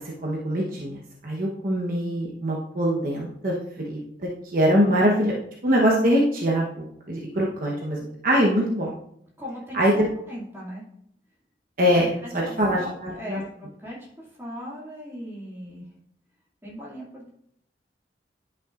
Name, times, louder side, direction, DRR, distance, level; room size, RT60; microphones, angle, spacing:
voice 1, 0.2-3.5 3.9-5.3 5.6-8.9 9.7-10.1 11.8-13.4, equal, 50° right, -3 dB, 1.0 m, -23 dB
voice 2, 8.4-8.7 9.4-10.8 12.0-15.8 16.6-17.3, equal, 15° right, -6 dB, 2.3 m, -39 dB
10.5 x 5.9 x 2.5 m, 0.72 s
head